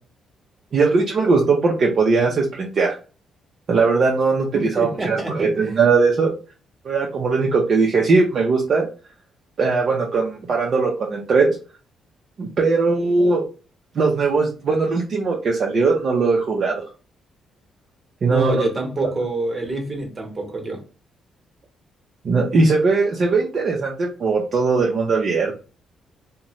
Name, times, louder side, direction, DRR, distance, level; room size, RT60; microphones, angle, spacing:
voice 1, 0.7-2.9 3.7-6.3 6.8-8.9 9.6-11.5 12.4-13.4 13.9-16.8 18.2-18.7 22.2-25.6, right 4 dB, 55° right, -1 dB, 0.6 m, -19 dB
voice 2, 4.5-5.7 18.2-20.8, right 2 dB, 30° right, 3 dB, 1.0 m, -26 dB
2.6 x 2.1 x 3.0 m, 0.34 s
cardioid pair, 90°, 0 cm